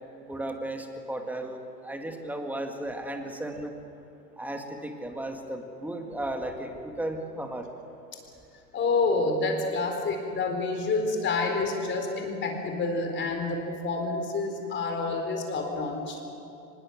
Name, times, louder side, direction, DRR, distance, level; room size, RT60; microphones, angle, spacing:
voice 1, 0.3-3.7 4.4-7.7, right 1 dB, 5° right, 4 dB, 1.9 m, -35 dB
voice 2, 8.7-16.2, left 3 dB, 25° left, 3 dB, 4.2 m, -28 dB
24.0 x 21.0 x 6.4 m, 2.9 s
hypercardioid pair, 125°, 49 cm